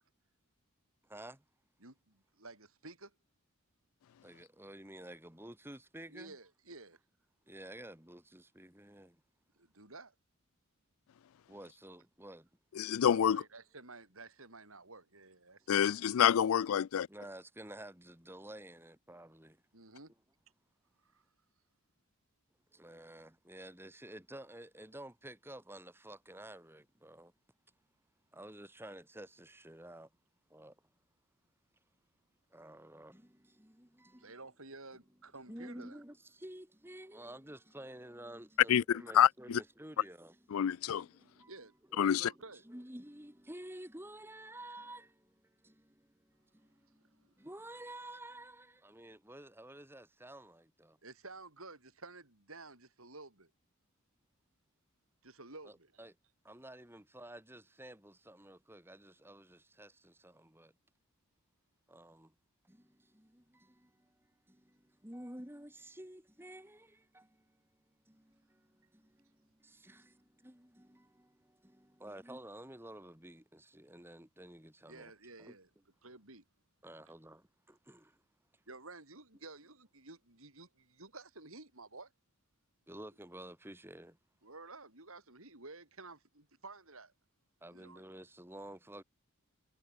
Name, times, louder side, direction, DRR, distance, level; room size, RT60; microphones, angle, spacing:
voice 1, 1.0-1.4 4.2-6.4 7.5-9.2 11.5-12.5 17.1-19.6 22.7-27.3 28.3-30.1 30.5-30.8 32.5-34.4 35.5-41.5 41.9-51.0 55.6-56.1 56.4-60.7 61.9-62.3 62.6-67.8 68.1-75.1 75.4-75.6 76.8-78.2 78.5-78.6 82.9-84.2 87.6-89.0, right 1 dB, 10° right, 3.5 m, -51 dB
voice 2, 1.8-3.1 6.1-7.0 9.6-10.1 13.1-16.1 19.7-20.1 21.0-21.2 34.2-36.0 41.4-41.7 42.0-42.6 47.0-47.5 51.0-53.5 55.2-55.9 74.9-75.7 76.0-76.4 78.7-82.1 84.4-87.1 87.7-88.0, right 3 dB, 75° right, 7.4 m, -52 dB
voice 3, 12.8-13.4 15.7-17.1 38.7-39.6 40.5-41.1 42.0-42.3, left 9 dB, 80° left, 0.4 m, -28 dB
head